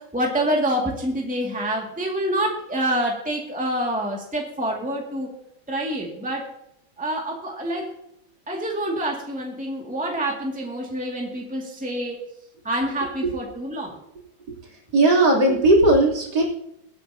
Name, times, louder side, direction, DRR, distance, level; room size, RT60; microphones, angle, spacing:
voice 1, 0.1-5.3 5.7-6.4 7.0-7.9 8.5-12.2 12.6-14.0, right 1 dB, 5° right, -1 dB, 2.0 m, -27 dB
voice 2, 14.9-16.4, right 2 dB, 55° right, -3 dB, 3.9 m, -17 dB
22.5 x 9.8 x 2.8 m, 0.78 s
omnidirectional pair, 2.2 m